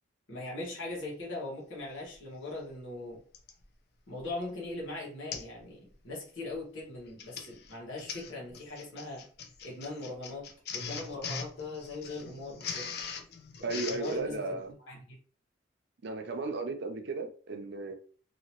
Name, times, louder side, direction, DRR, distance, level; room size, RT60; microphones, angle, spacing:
voice 1, 0.3-3.2 4.1-9.3 9.6-12.9 13.7-14.6 14.9-15.2, left 2 dB, 80° left, 1.4 m, -40 dB
Printer, 2.1-2.2 3.3-3.6 4.2-4.4 4.7-4.8 5.3-5.6 5.9-6.2 7.0-14.2, left 6 dB, 55° left, 0.5 m, -41 dB
voice 2, 13.6-14.7 16.0-17.9, right 3 dB, 60° right, 0.5 m, -35 dB
2.8 x 2.8 x 2.9 m
head